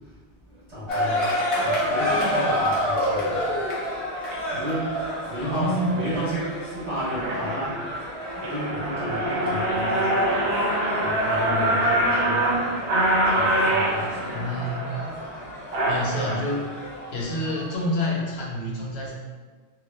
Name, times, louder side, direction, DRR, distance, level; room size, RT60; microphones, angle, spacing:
voice 1, 0.7-1.3 1.6-3.4 4.5-10.3 11.0-12.5 13.3-14.3, equal, 40° right, -10 dB, 0.9 m, -32 dB
sound 1, 0.9-17.7, equal, 40° left, 0.6 m, -30 dB
sound 2, 4.2-4.3 5.0-5.2 5.7-6.2 6.6-6.7 6.9-16.4, right 1 dB, 70° right, 0.8 m, -25 dB
voice 2, 5.4-6.0 14.3-14.9 15.9-16.6 17.1-19.1, left 1 dB, 70° left, -3 dB, 0.8 m, -28 dB
2.2 x 2.0 x 3.1 m, 1.4 s
omnidirectional pair, 1.1 m